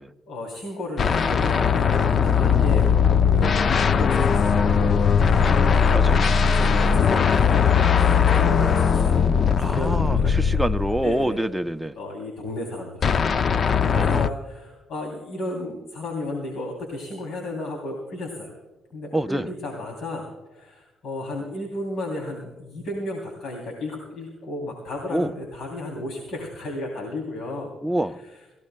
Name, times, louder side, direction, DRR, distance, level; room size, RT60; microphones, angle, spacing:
voice 1, 0.3-2.9 3.3-5.7 6.4-10.6 11.0-11.4 12.0-13.3 13.8-18.5 18.9-27.7 28.2-28.3, left 1 dB, 70° left, 3.1 m, -33 dB
sound 1, 1.0-11.2 13.0-14.3, left 6 dB, 50° left, 0.5 m, -19 dB
voice 2, 5.9-6.5 9.6-12.0 13.9-14.3 19.1-19.5 25.1-25.3 27.8-28.2, right 1 dB, 5° right, 0.7 m, -26 dB
26.0 x 16.0 x 2.2 m
cardioid pair, 90°, 0 cm